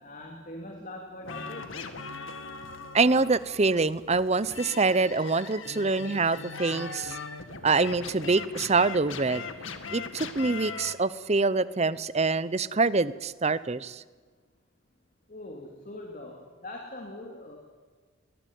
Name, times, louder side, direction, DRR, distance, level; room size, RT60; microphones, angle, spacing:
voice 1, 0.0-1.8 15.3-17.6, left 1 dB, 40° left, 1 dB, 3.0 m, -42 dB
sound 1, 1.2-10.9, left 4 dB, 75° left, 2.0 m, -40 dB
voice 2, 2.9-7.2 7.6-9.4 9.9-14.0, right 3 dB, 30° right, 17 dB, 0.7 m, -25 dB
22.5 x 19.0 x 9.4 m, 1.5 s
head